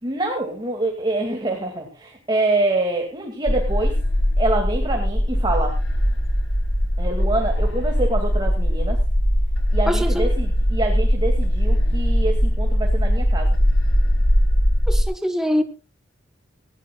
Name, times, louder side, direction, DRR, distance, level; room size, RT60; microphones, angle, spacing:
voice 1, 0.0-3.9 4.4-5.8 7.0-9.0 9.7-13.6, right 2 dB, 25° right, 1 dB, 2.5 m, -25 dB
sound 1, 3.5-15.0, equal, 90° left, 3.9 m, -20 dB
voice 2, 9.9-10.3 14.9-15.6, equal, 5° right, 6 dB, 1.3 m, -23 dB
19.5 x 16.5 x 2.4 m, 0.31 s
head